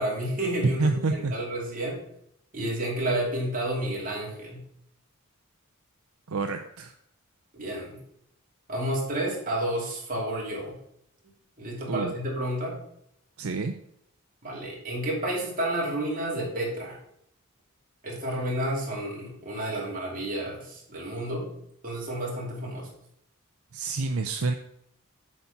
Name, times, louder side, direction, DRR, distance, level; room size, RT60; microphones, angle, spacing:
voice 1, 0.0-2.0 2.5-4.6 7.5-8.0 8.7-10.7 11.6-12.8 14.4-17.0 18.0-21.5 21.8-22.9, right 1 dB, 40° right, -3 dB, 2.6 m, -30 dB
voice 2, 0.8-1.3 6.3-6.9 11.9-12.1 13.4-13.7 23.7-24.5, right 3 dB, 75° right, 5 dB, 0.6 m, -28 dB
8.0 x 4.2 x 5.8 m, 0.73 s
head